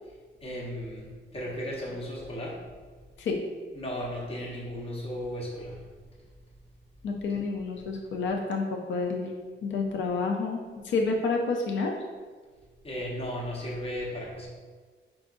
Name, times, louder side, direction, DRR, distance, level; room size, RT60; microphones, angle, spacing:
voice 1, 0.4-2.6 3.7-5.8 12.8-14.5, equal, 30° left, -3 dB, 0.9 m, -35 dB
voice 2, 7.0-9.3 9.6-11.9, left 4 dB, 85° left, 1 dB, 0.5 m, -29 dB
4.8 x 3.6 x 2.5 m, 1.5 s
wide cardioid pair, 160°, 19 cm